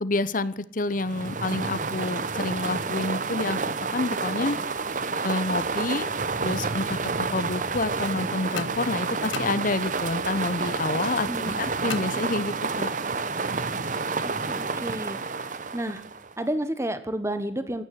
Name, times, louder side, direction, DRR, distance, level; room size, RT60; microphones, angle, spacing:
voice 1, 0.0-4.6 5.2-6.1 6.4-12.9, left 2 dB, 45° left, 16 dB, 0.8 m, -28 dB
sound 1, 0.9-16.4, right 4 dB, 40° right, 0.9 m, -29 dB
sound 2, 8.6-10.2 11.9-12.9, left 4 dB, 85° left, 1.0 m, -38 dB
voice 2, 11.3-11.7 14.5-15.2 15.7-16.0 16.4-17.8, right 1 dB, 15° right, 10 dB, 1.2 m, -30 dB
15.5 x 9.6 x 9.6 m, 0.69 s
head